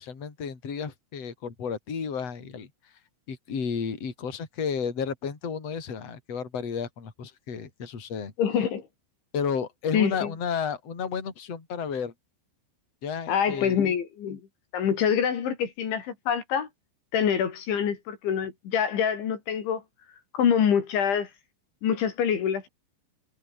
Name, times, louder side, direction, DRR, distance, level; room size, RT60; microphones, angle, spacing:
voice 1, 0.0-2.7 3.3-8.3 9.3-12.1 13.0-13.7, left 6 dB, 35° left, 4.8 m, -32 dB
voice 2, 8.4-8.8 9.9-10.3 13.3-14.4 14.7-16.7 17.1-19.8 20.3-21.3 21.8-22.7, left 8 dB, 70° left, 5.6 m, -25 dB
omnidirectional pair, 5.6 m